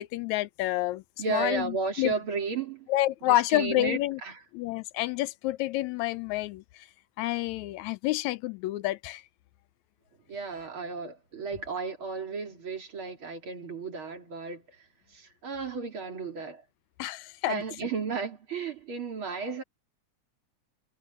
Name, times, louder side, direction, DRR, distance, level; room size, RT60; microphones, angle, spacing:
voice 1, 0.0-2.1 2.9-4.2 4.5-6.9 7.2-9.2 17.0-17.6, left 16 dB, 80° left, 1.9 m, -29 dB
voice 2, 1.2-2.9 3.3-4.4 10.3-14.8 15.1-16.6 17.5-19.6, right 4 dB, 45° right, 3.4 m, -34 dB
omnidirectional pair, 3.3 m